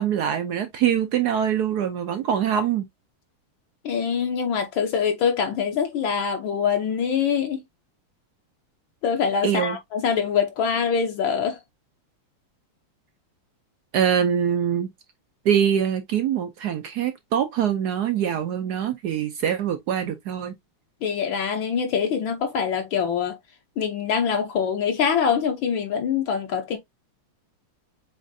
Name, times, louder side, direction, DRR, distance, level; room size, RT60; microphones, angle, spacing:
voice 1, 0.0-2.9 9.4-9.8 13.9-14.9 15.4-20.5, right 9 dB, 75° right, 0.9 m, -24 dB
voice 2, 3.8-7.6 9.0-11.6 21.0-23.4 23.8-26.8, left 7 dB, 70° left, 1.5 m, -24 dB
7.3 x 2.5 x 2.6 m
omnidirectional pair, 2.4 m